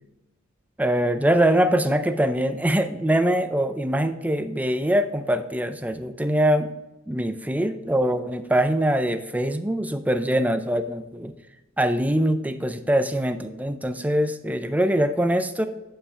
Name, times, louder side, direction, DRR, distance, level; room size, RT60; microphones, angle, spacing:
voice 1, 0.8-6.7 7.1-11.3 11.8-15.7, right 1 dB, 10° right, 10 dB, 0.5 m, -23 dB
11.0 x 5.6 x 3.7 m, 1.0 s
head